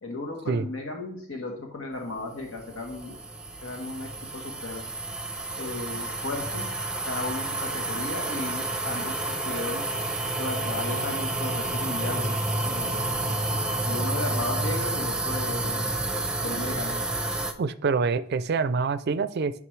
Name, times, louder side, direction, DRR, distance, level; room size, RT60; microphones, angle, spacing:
voice 1, 0.0-3.1 3.6-4.1 4.3-4.8 5.6-6.7 7.1-9.8 10.4-12.3 12.6-13.1 13.8-15.9 16.4-17.0, left 2 dB, 85° left, 1 dB, 1.2 m, -35 dB
sound 1, 2.4-17.5, right 2 dB, 5° right, 0.6 m, -30 dB
voice 2, 17.6-19.6, right 4 dB, 55° right, 13 dB, 0.4 m, -26 dB
9.9 x 5.2 x 3.2 m, 0.64 s
head